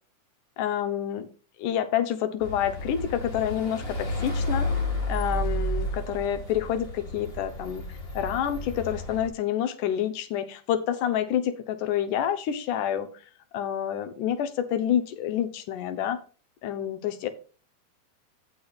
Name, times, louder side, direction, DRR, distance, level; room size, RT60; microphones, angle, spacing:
voice 1, 0.6-1.3 1.6-4.7 5.1-7.9 8.1-13.1 13.5-16.2 16.6-17.3, left 10 dB, 85° left, 9 dB, 2.5 m, -28 dB
sound 1, 2.4-9.3, left 1 dB, 25° left, 1.7 m, -31 dB
15.5 x 6.1 x 2.4 m, 0.37 s
omnidirectional pair, 3.5 m